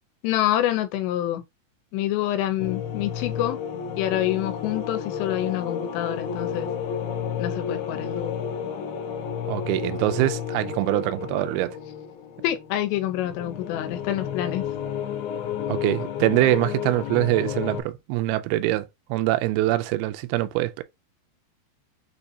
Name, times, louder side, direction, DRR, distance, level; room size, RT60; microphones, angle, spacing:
voice 1, 0.2-1.4 1.9-3.6 4.0-6.7 7.4-8.3 12.4-14.6, left 13 dB, 90° left, 2.8 m, -27 dB
sound 1, 2.6-17.8, left 8 dB, 70° left, 2.8 m, -31 dB
voice 2, 9.4-11.8 15.7-20.8, right 17 dB, 90° right, 2.2 m, -24 dB
6.6 x 2.6 x 2.7 m
omnidirectional pair, 5.0 m